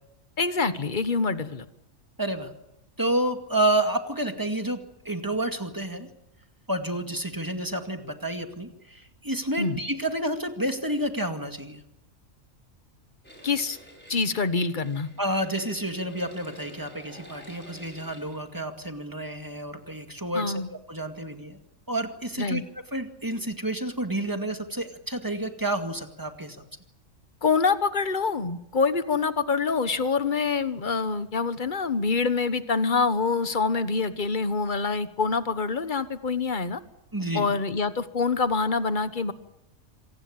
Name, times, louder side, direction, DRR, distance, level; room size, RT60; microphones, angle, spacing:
voice 1, 0.4-1.7 9.6-9.8 13.4-13.8 14.1-15.1 20.3-20.7 22.4-22.6 27.4-36.8 37.3-39.3, left 4 dB, 40° left, 12 dB, 1.4 m, -26 dB
voice 2, 2.2-2.5 3.0-4.8 5.1-6.1 6.7-11.8 15.2-20.6 20.9-21.6 21.9-22.6 22.9-26.6 37.1-37.5, right 1 dB, 15° right, 6 dB, 2.2 m, -29 dB
sound 1, 13.2-18.4, equal, 10° left, 5.8 m, -49 dB
26.0 x 18.5 x 8.8 m, 0.85 s
omnidirectional pair, 1.4 m